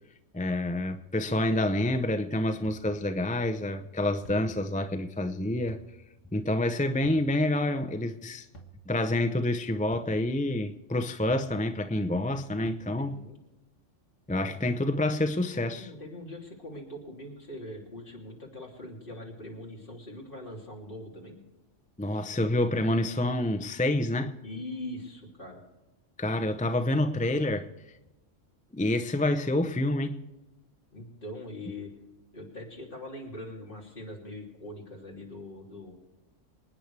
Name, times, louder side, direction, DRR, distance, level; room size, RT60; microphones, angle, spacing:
voice 1, 0.3-5.8 6.3-8.5 8.9-13.2 14.3-15.9 22.0-24.3 26.2-27.7 28.7-30.2, left 1 dB, 10° left, 0.4 m, -28 dB
sound 1, 2.6-3.0 4.2-4.7 5.7-6.1 7.0-7.4 8.5-8.9 9.9-10.3 11.3-11.7 12.7-12.9, equal, 80° left, 1.9 m, -48 dB
voice 2, 13.0-13.4 15.6-21.4 24.4-25.6 30.9-31.9 32.3-36.0, left 1 dB, 45° left, 3.4 m, -42 dB
26.0 x 9.6 x 3.3 m
omnidirectional pair, 1.3 m